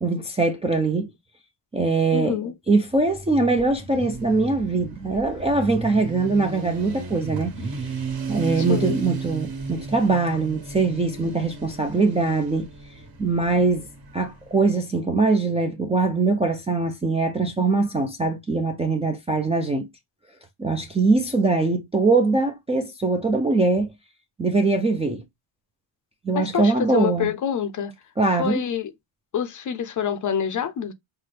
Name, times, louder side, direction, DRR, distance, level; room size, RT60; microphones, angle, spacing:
voice 1, 0.0-1.1 1.7-2.4 2.7-7.5 8.3-12.7 13.2-13.9 14.1-19.9 20.6-23.9 24.4-25.2 26.2-27.3 28.2-28.6, right 3 dB, 15° right, 0.3 m, -22 dB
voice 2, 2.1-2.5 8.6-9.0 26.3-27.9 28.4-28.9 29.3-30.9, left 8 dB, 40° left, 0.5 m, -26 dB
Motorcycle, 2.9-14.6, right 4 dB, 45° right, 1.4 m, -34 dB
5.8 x 2.2 x 3.2 m
cardioid pair, 145°, 49 cm